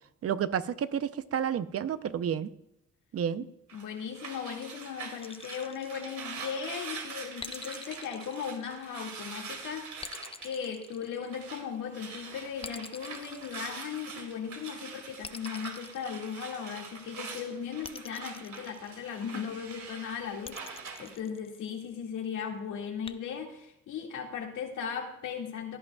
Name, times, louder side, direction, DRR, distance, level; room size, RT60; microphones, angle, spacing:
voice 1, 0.2-2.5 3.1-3.5, right 8 dB, 50° right, 0.7 m, -30 dB
voice 2, 3.7-25.8, left 7 dB, 85° left, 2.1 m, -37 dB
sound 1, 3.7-11.7 11.9-21.1, right 5 dB, 70° right, 2.5 m, -44 dB
sound 2, 5.2-6.6 7.4-9.2 10.0-11.8 12.6-14.3 15.2-16.9 17.8-19.4 20.4-22.0 23.1-23.2, left 5 dB, 20° left, 0.5 m, -46 dB
16.0 x 10.5 x 2.3 m
cardioid pair, 90°, 30 cm